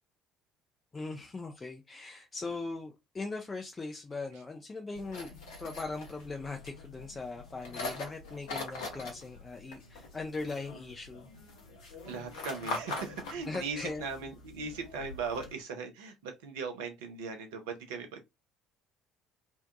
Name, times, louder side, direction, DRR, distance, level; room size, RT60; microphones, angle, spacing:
voice 1, 0.9-5.3 5.6-11.3 13.5-14.0, left 3 dB, 25° left, 0.4 m, -40 dB
sound 1, 4.9-15.5, left 3 dB, 65° left, 0.7 m, -43 dB
voice 2, 12.0-18.3, right 5 dB, 65° right, 0.5 m, -39 dB
2.6 x 2.2 x 2.3 m
figure-of-eight pair, 55°, 0 cm